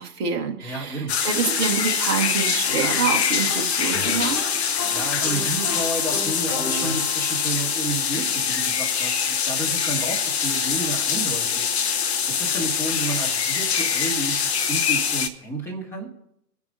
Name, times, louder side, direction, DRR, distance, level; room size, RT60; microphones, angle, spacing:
voice 1, 0.0-4.4, right 6 dB, 15° right, 3 dB, 1.0 m, -27 dB
voice 2, 0.6-1.1 4.9-11.8 12.4-16.1, right 2 dB, 5° left, -2 dB, 1.7 m, -31 dB
sound 1, 1.1-15.3, left 7 dB, 40° left, 1.2 m, -24 dB
sound 2, 2.6-7.7, left 1 dB, 25° left, 4.3 m, -34 dB
26.5 x 9.5 x 2.7 m, 0.79 s
figure-of-eight pair, 130°, 47 cm